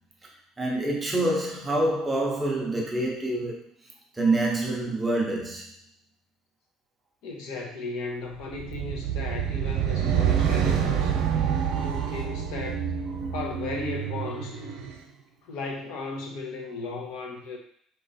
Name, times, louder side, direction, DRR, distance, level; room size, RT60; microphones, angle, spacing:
voice 1, 0.6-3.6 4.1-5.7, right 2 dB, 10° right, -2 dB, 0.7 m, -26 dB
voice 2, 7.2-11.1 11.7-12.9 13.3-14.6 15.5-17.6, left 3 dB, 65° left, 1 dB, 0.9 m, -36 dB
sound 1, 8.5-15.0, right 8 dB, 80° right, 0.7 m, -27 dB
4.1 x 3.1 x 4.0 m, 0.64 s
cardioid pair, 180°, 0 cm